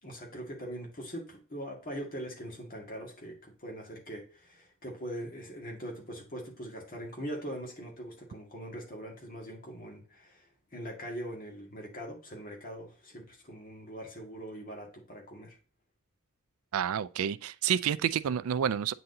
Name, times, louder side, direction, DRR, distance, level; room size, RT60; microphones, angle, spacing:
voice 1, 0.0-10.5 10.7-15.6, equal, 40° left, 1.9 m, -42 dB
voice 2, 16.7-18.9, right 8 dB, 70° right, 0.3 m, -29 dB
8.8 x 4.1 x 2.7 m
head